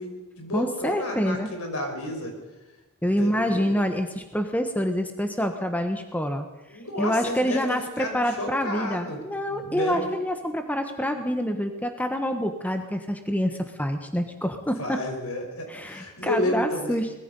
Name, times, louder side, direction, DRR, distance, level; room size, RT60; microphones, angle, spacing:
voice 1, 0.0-2.3 3.2-3.6 6.7-7.6 8.0-10.1 14.8-17.0, left 1 dB, 70° left, 3 dB, 5.3 m, -31 dB
voice 2, 0.5-1.5 3.0-6.5 7.0-15.0 15.7-17.1, equal, 5° left, 6 dB, 1.3 m, -27 dB
23.5 x 20.5 x 5.4 m, 1.1 s
head